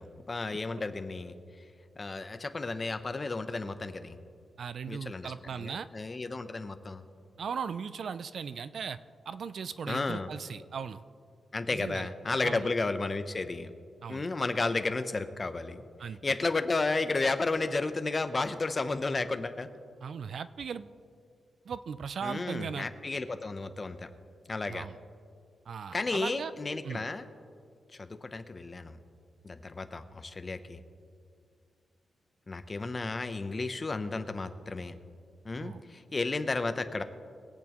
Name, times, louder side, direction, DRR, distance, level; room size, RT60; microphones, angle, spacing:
voice 1, 0.0-1.3 2.0-4.2 4.9-7.0 9.9-10.3 11.5-13.7 14.1-19.7 22.2-24.1 24.5-24.9 25.9-27.3 28.0-29.0 29.4-30.8 32.5-34.9 35.4-37.0, left 3 dB, 25° left, 10 dB, 0.6 m, -33 dB
voice 2, 4.6-5.9 7.4-9.0 9.3-11.0 11.7-12.1 12.4-12.7 14.0-14.3 16.0-16.2 20.0-20.9 21.7-22.9 24.7-25.0 25.7-26.5 26.8-27.0 35.6-35.8, right 6 dB, 60° right, 14 dB, 0.3 m, -38 dB
22.0 x 8.5 x 3.0 m, 2.3 s
wide cardioid pair, 145°, 0 cm